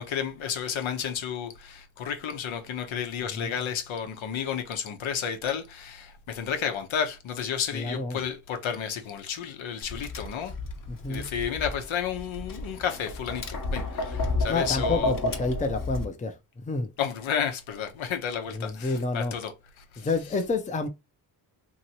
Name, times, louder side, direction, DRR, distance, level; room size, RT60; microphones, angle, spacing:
voice 1, 0.0-10.5 11.1-15.1 17.0-20.1, left 8 dB, 80° left, 0.9 m, -32 dB
voice 2, 7.7-8.2 10.9-11.3 14.5-16.9 18.6-19.3 20.0-20.9, left 3 dB, 15° left, 0.5 m, -29 dB
Tap, 9.8-16.0, left 2 dB, 45° left, 1.0 m, -32 dB
2.9 x 2.9 x 2.8 m
cardioid pair, 105°, 46 cm